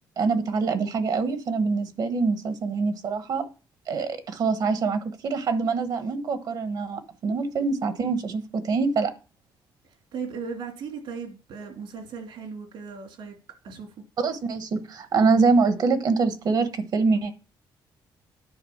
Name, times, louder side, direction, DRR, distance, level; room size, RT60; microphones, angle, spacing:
voice 1, 0.2-3.5 3.9-9.1 14.2-17.3, right 4 dB, 55° right, 1.2 m, -24 dB
voice 2, 10.1-13.3 13.6-13.9, right 5 dB, 80° right, 3.0 m, -37 dB
10.5 x 5.0 x 7.2 m
cardioid pair, 160°, 8 cm